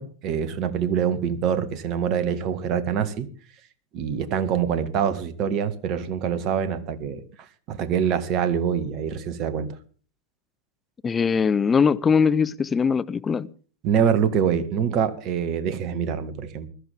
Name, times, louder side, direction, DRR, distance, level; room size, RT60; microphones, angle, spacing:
voice 1, 0.0-3.3 3.9-7.2 7.7-9.7 13.8-16.7, right 8 dB, 40° right, 1.7 m, -25 dB
voice 2, 11.0-13.5, left 6 dB, 20° left, 0.7 m, -21 dB
21.5 x 13.5 x 3.6 m
figure-of-eight pair, 90°, 0 cm